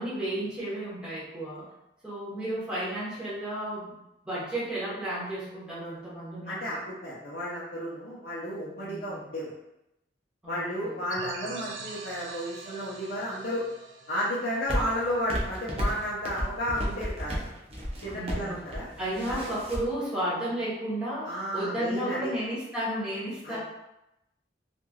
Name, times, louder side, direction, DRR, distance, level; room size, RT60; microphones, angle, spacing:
voice 1, 0.0-1.6 2.0-3.9 4.2-6.8 8.8-9.2 10.4-11.1 18.1-18.6 19.0-23.6, right 1 dB, 5° right, -9 dB, 1.0 m, -33 dB
voice 2, 6.5-9.5 10.5-13.6 14.1-17.4 18.0-18.9 19.3-19.4 21.2-22.3 23.4-23.6, equal, 55° left, -9 dB, 0.6 m, -32 dB
sound 1, 11.1-15.6, right 4 dB, 85° right, 0.4 m, -43 dB
sound 2, 14.7-19.8, equal, 35° right, 0.5 m, -33 dB
3.0 x 2.5 x 2.3 m, 0.88 s
head